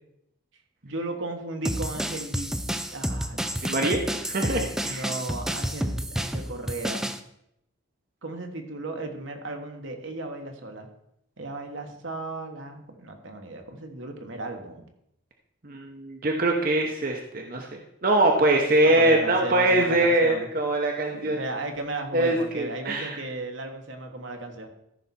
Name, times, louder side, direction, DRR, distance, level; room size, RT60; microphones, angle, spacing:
voice 1, 0.8-3.9 4.8-7.1 8.2-10.9 11.4-14.8 18.8-20.5 21.1-24.7, right 2 dB, 75° right, 4 dB, 1.4 m, -35 dB
sound 1, 1.6-7.2, equal, ahead, 0.3 m, -30 dB
voice 2, 3.6-5.1 15.6-17.7 18.0-21.4 22.1-23.2, right 1 dB, 45° right, 2 dB, 0.9 m, -23 dB
13.5 x 5.8 x 4.3 m, 0.78 s
head